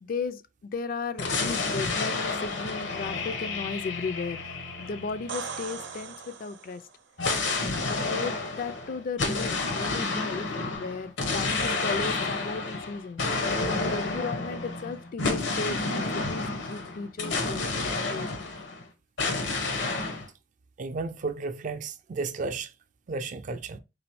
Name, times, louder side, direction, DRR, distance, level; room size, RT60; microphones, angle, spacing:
voice 1, 0.0-4.4 4.8-6.8 7.6-13.2 13.8-18.3, left 4 dB, 50° left, 0.3 m, -35 dB
sound 1, 1.2-5.9 7.2-18.8 19.2-20.3, left 3 dB, 80° left, 0.9 m, -30 dB
sound 2, 5.1-7.0 10.7-10.8, right 5 dB, 85° right, 0.7 m, -39 dB
voice 2, 20.8-22.7 23.1-23.8, right 3 dB, 45° right, 0.4 m, -33 dB
4.1 x 3.4 x 3.0 m
head